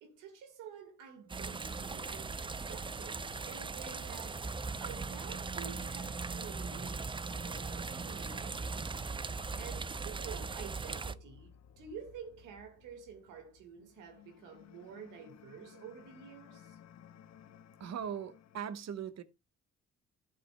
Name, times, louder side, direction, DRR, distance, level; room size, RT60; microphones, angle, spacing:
voice 1, 0.0-4.4 4.8-8.9 9.6-16.8, right 7 dB, 90° right, 1.9 m, -50 dB
sound 1, 1.3-11.1, right 4 dB, 15° right, 0.5 m, -39 dB
sound 2, 1.6-18.6, left 9 dB, 60° left, 0.8 m, -59 dB
voice 2, 17.8-19.2, right 8 dB, 60° right, 1.1 m, -39 dB
13.5 x 8.3 x 2.2 m
cardioid pair, 90°, 30 cm